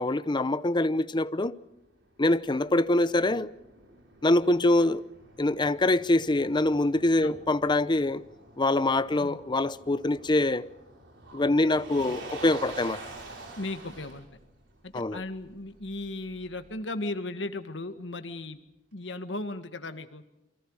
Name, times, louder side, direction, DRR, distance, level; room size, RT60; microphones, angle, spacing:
voice 1, 0.0-1.6 2.2-3.5 4.2-5.0 5.4-8.2 8.6-10.7 11.3-13.0 14.9-15.2, left 2 dB, 25° left, 0.7 m, -24 dB
Motor vehicle (road), 1.7-16.7, right 2 dB, 70° right, 5.9 m, -47 dB
voice 2, 13.6-14.3 14.8-18.6 18.9-20.2, left 2 dB, 70° left, 1.9 m, -36 dB
29.0 x 24.0 x 4.9 m
head